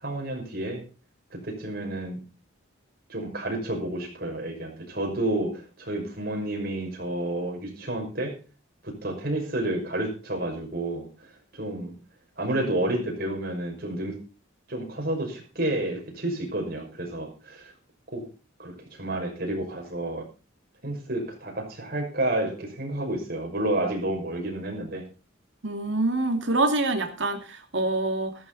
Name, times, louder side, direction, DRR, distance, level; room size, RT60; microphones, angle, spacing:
voice 1, 0.0-0.8 1.3-2.2 3.1-8.4 8.8-11.1 11.5-11.9 12.4-14.2 14.7-17.7 18.1-18.3 18.6-20.2 20.8-25.1, right 1 dB, 50° right, 1 dB, 6.0 m, -30 dB
voice 2, 25.6-28.3, right 2 dB, 65° right, 5 dB, 2.5 m, -26 dB
14.0 x 14.0 x 4.1 m, 0.34 s
head